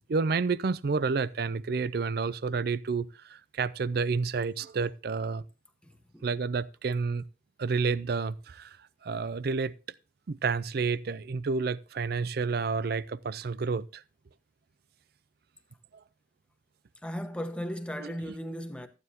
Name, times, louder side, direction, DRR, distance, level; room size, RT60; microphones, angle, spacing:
voice 1, 0.1-5.4 6.2-7.2 7.6-8.8 9.0-9.7 10.3-14.0 18.0-18.3, right 4 dB, 55° right, 0.4 m, -30 dB
voice 2, 5.8-6.3 17.0-18.9, equal, 5° left, 0.9 m, -36 dB
14.0 x 9.6 x 2.8 m
head